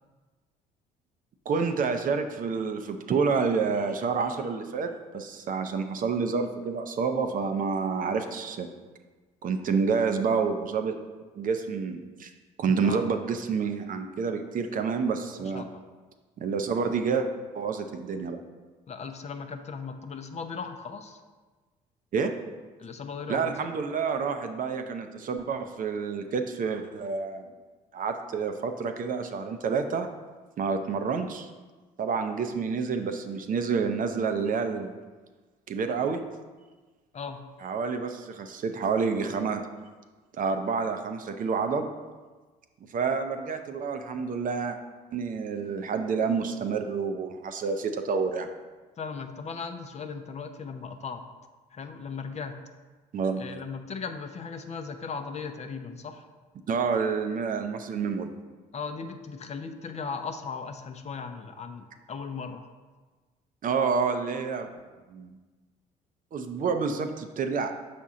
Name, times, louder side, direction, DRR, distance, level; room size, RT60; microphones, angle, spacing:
voice 1, 1.5-8.7 9.4-11.0 11.3-12.3 12.6-15.6 16.4-17.3 17.5-18.4 22.1-22.3 23.3-27.5 27.9-30.1 30.6-31.5 32.0-34.9 35.7-36.2 37.6-39.6 40.3-41.9 42.9-44.8 45.1-48.5 53.1-53.4 56.7-58.3 63.6-64.7 65.1-65.3 66.3-67.7, right 5 dB, 45° right, 6 dB, 0.6 m, -28 dB
voice 2, 12.8-13.2 15.4-15.8 18.9-21.2 22.8-23.7 37.1-37.4 49.0-51.2 51.7-52.5 53.4-56.3 58.7-62.7, left 5 dB, 35° left, 7 dB, 0.6 m, -37 dB
5.9 x 4.2 x 3.7 m, 1.3 s
supercardioid pair, 65°, 19 cm